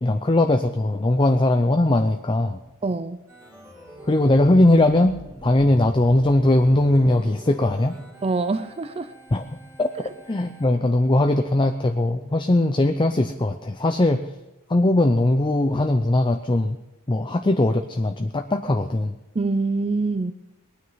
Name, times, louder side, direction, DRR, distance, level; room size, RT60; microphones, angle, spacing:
voice 1, 0.0-2.6 4.1-8.0 9.3-9.9 10.3-14.3 14.7-16.8 17.1-19.2, left 1 dB, 20° left, 7 dB, 0.6 m, -20 dB
voice 2, 2.8-3.2 8.2-9.1 19.3-20.3, right 3 dB, 30° right, 12 dB, 0.5 m, -25 dB
Organ, 3.3-10.6, equal, 10° right, 3.4 m, -44 dB
20.0 x 9.4 x 5.7 m, 1.0 s
head